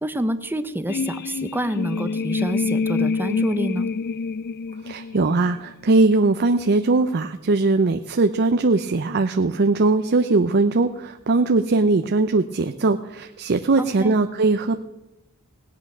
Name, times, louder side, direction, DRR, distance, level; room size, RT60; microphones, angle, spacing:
voice 1, 0.0-3.9 13.8-14.1, right 1 dB, 10° right, 10 dB, 0.7 m, -27 dB
sound 1, 0.9-5.7, left 4 dB, 45° left, 0.4 m, -26 dB
voice 2, 4.8-14.8, right 3 dB, 50° right, 7 dB, 0.6 m, -20 dB
18.0 x 8.7 x 6.1 m, 0.95 s
head